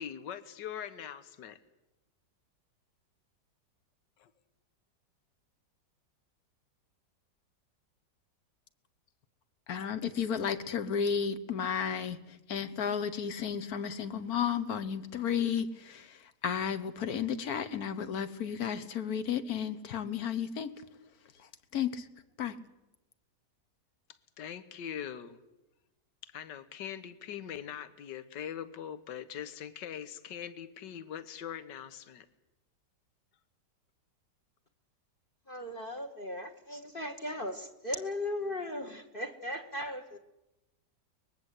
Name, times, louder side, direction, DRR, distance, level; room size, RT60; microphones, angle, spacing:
voice 1, 0.0-1.6 4.2-4.3 24.4-25.4 26.2-32.3, left 9 dB, 75° left, 13 dB, 1.7 m, -42 dB
voice 2, 9.7-20.7 21.7-22.1 22.4-22.5, left 7 dB, 60° left, 13 dB, 1.5 m, -33 dB
voice 3, 35.5-40.2, left 1 dB, 35° left, 8 dB, 1.3 m, -37 dB
23.5 x 20.5 x 8.2 m, 0.97 s
omnidirectional pair, 1.9 m